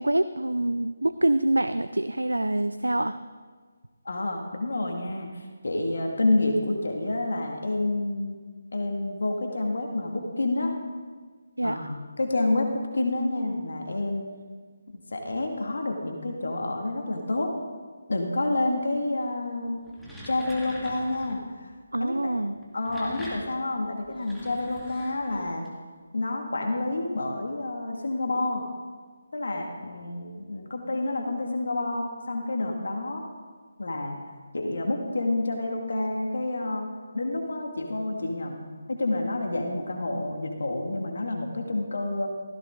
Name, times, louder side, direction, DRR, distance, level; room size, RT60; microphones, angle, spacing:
voice 1, 0.0-3.2 11.6-11.9 21.9-22.6, right 1 dB, 85° right, 12 dB, 0.5 m, -25 dB
voice 2, 4.0-8.4 8.7-10.7 11.6-14.2 15.1-17.5 18.1-19.8 20.2-21.7 22.0-22.3 22.7-25.7 26.1-28.6 29.3-33.2 33.8-34.2 34.5-36.9 37.1-42.3, left 2 dB, 65° left, 2 dB, 2.3 m, -29 dB
sound 1, 19.7-21.4 22.6-25.7, equal, ahead, 2.3 m, -43 dB
16.5 x 15.5 x 3.9 m, 1.5 s
figure-of-eight pair, 150°, 0 cm